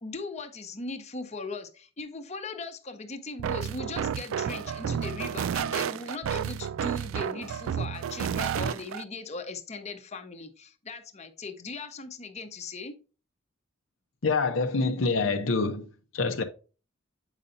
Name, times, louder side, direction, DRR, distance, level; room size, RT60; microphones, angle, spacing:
voice 1, 0.0-13.0, left 3 dB, 35° left, 0.8 m, -39 dB
sound 1, 3.4-9.0, right 8 dB, 75° right, 0.3 m, -31 dB
voice 2, 14.2-15.9 16.1-16.4, left 4 dB, 70° left, 0.7 m, -26 dB
8.1 x 5.5 x 2.6 m
head